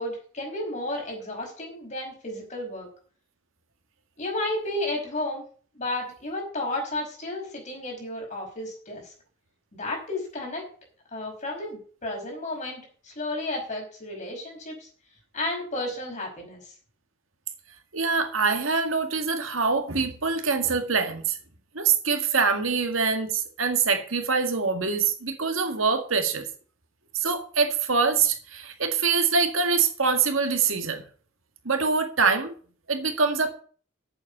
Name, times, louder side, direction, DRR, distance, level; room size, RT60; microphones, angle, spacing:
voice 1, 0.0-2.9 4.2-5.4 5.7-9.1 9.7-10.6 11.1-14.9 15.3-16.7, left 1 dB, 35° left, 0 dB, 5.1 m, -32 dB
voice 2, 17.9-21.4 21.7-26.5 27.1-31.0 31.7-32.5 32.9-33.5, right 5 dB, 90° right, 6 dB, 2.0 m, -24 dB
8.6 x 7.3 x 8.3 m, 0.43 s
head